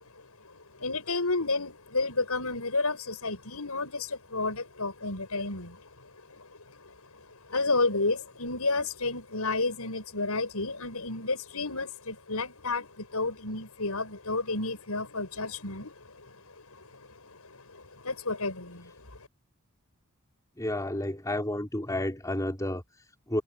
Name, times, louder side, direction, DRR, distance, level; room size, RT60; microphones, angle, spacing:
voice 1, 0.2-19.1, left 3 dB, 90° left, 6.9 m, -32 dB
voice 2, 20.6-23.4, left 1 dB, 15° left, 4.1 m, -31 dB
head